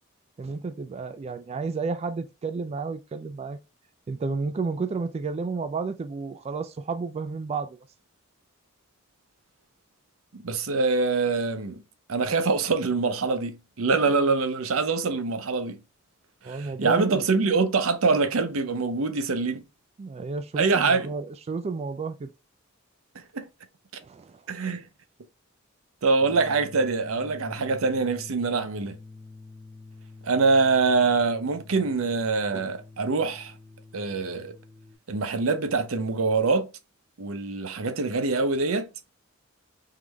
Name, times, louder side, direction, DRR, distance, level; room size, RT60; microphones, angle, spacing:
voice 1, 0.4-3.6 4.1-7.8 16.4-17.2 20.0-22.3 24.0-24.4, right 4 dB, 30° right, 0.3 m, -31 dB
voice 2, 10.3-11.8 12.1-15.8 16.5-19.6 20.6-21.1 23.3-23.5 24.5-24.8 26.0-28.9 30.2-33.5 33.9-34.5 35.1-36.7 37.2-38.9, right 4 dB, 80° right, 0.7 m, -24 dB
sound 1, 26.2-34.9, left 3 dB, 10° left, 0.8 m, -46 dB
3.8 x 3.1 x 3.3 m
head